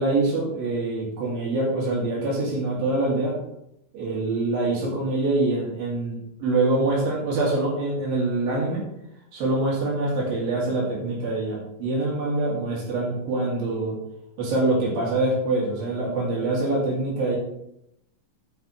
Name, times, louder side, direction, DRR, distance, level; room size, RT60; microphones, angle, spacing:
voice 1, 0.0-3.4 3.9-8.8 9.3-14.0 14.4-17.4, right 2 dB, 90° right, -4 dB, 4.6 m, -25 dB
15.0 x 6.0 x 3.3 m, 0.80 s
omnidirectional pair, 4.0 m